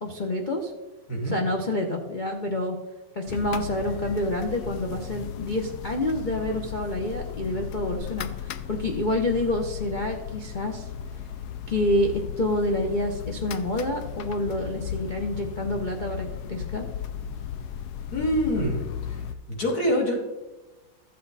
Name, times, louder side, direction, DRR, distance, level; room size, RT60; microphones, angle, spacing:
voice 1, 0.0-0.7 1.2-2.8 3.1-10.8 11.7-16.9, left 1 dB, 65° left, 2 dB, 0.4 m, -28 dB
sound 1, 3.3-19.3, left 8 dB, 90° left, 0.8 m, -36 dB
voice 2, 18.1-18.8 19.5-20.2, equal, 45° left, -1 dB, 3.0 m, -25 dB
13.5 x 7.9 x 4.1 m, 1.1 s
omnidirectional pair, 2.4 m